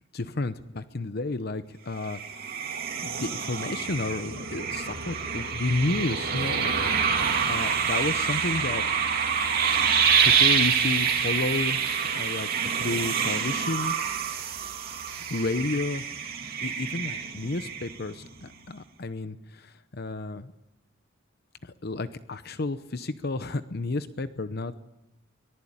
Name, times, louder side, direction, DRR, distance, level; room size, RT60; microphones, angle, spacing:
voice 1, 0.1-2.2 3.0-6.7 7.1-8.8 10.2-12.5 12.8-14.0 15.3-16.0 16.6-20.5 21.6-24.7, left 2 dB, 55° left, 12 dB, 0.8 m, -31 dB
sound 1, 2.0-18.2, right 6 dB, 50° right, 3.1 m, -27 dB
23.5 x 19.0 x 8.8 m, 0.92 s
head